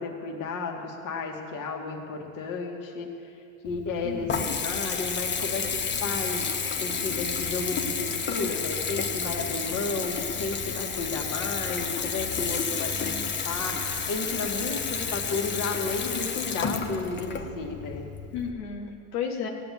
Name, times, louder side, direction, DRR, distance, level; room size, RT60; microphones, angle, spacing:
voice 1, 0.0-3.3 3.6-6.4 6.8-13.1 13.4-18.0, left 4 dB, 45° left, 2 dB, 2.4 m, -33 dB
Water tap faucet / Bathtub (filling or washing) / Trickle dribble, 3.6-18.5, left 5 dB, 25° left, 1.3 m, -31 dB
voice 2, 4.0-4.5 12.9-13.2 18.3-19.5, left 6 dB, 85° left, 1 dB, 1.9 m, -34 dB
16.0 x 8.8 x 8.7 m, 2.8 s
supercardioid pair, 110°, 45 cm